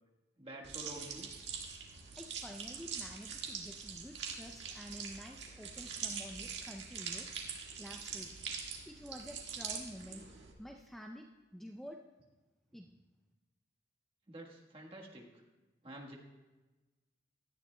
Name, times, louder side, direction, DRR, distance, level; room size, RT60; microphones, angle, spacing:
voice 1, 0.4-1.3 14.3-15.3 15.8-16.2, right 1 dB, 30° right, -1 dB, 1.3 m, -48 dB
sound 1, 0.6-10.5, right 6 dB, 75° right, 1.7 m, -43 dB
voice 2, 2.2-8.3 8.9-10.2 10.6-12.0 12.7-12.9, equal, ahead, 2 dB, 0.4 m, -49 dB
17.0 x 12.0 x 2.2 m, 1.2 s
head